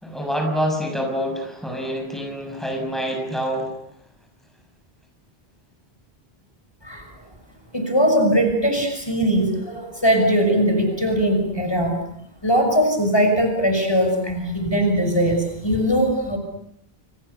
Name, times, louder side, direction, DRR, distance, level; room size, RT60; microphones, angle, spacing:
voice 1, 0.0-3.7, equal, ahead, 3 dB, 6.2 m, -26 dB
voice 2, 7.7-12.0 12.4-16.4, equal, 25° left, 4 dB, 6.2 m, -20 dB
30.0 x 28.5 x 7.0 m, 0.71 s
omnidirectional pair, 1.0 m